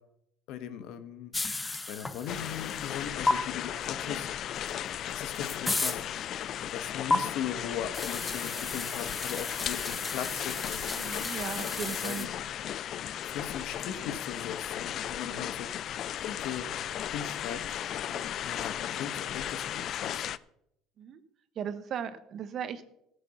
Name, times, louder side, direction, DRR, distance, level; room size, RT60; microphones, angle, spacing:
voice 1, 0.5-1.3 1.9-4.3 5.1-6.1 6.7-10.8 11.5-12.3 13.3-15.7 16.2-16.7 17.1-17.8 18.4-20.3, left 9 dB, 65° left, 11 dB, 1.2 m, -39 dB
sound 1, 1.3-3.0 3.3-3.4 4.7-4.8 5.1-6.0 7.1-7.2 7.9-12.3, left 2 dB, 15° left, 0.7 m, -33 dB
sound 2, 2.3-20.4, left 10 dB, 50° left, 0.4 m, -36 dB
voice 2, 10.9-12.3 15.2-15.5 18.1-18.3 21.0-21.2 21.5-22.8, right 8 dB, 45° right, 11 dB, 1.1 m, -38 dB
15.0 x 6.9 x 5.9 m, 0.78 s
supercardioid pair, 110°, 0 cm